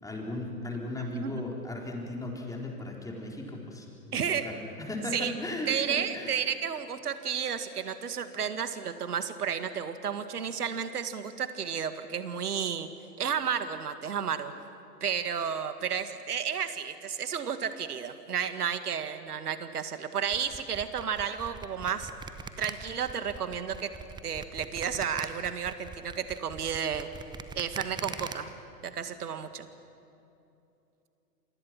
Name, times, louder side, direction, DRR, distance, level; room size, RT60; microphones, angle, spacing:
voice 1, 0.0-6.3, left 1 dB, 5° left, 0 dB, 4.1 m, -37 dB
voice 2, 4.1-4.5 5.1-5.3 5.7-12.9 13.2-14.5 15.0-22.1 22.6-23.9 24.2-27.1 27.6-28.5 28.8-29.7, right 7 dB, 65° right, 10 dB, 1.9 m, -32 dB
sound 1, 20.3-28.3, right 5 dB, 10° right, 1.0 m, -41 dB
28.0 x 27.5 x 6.2 m, 2.8 s
figure-of-eight pair, 100°, 49 cm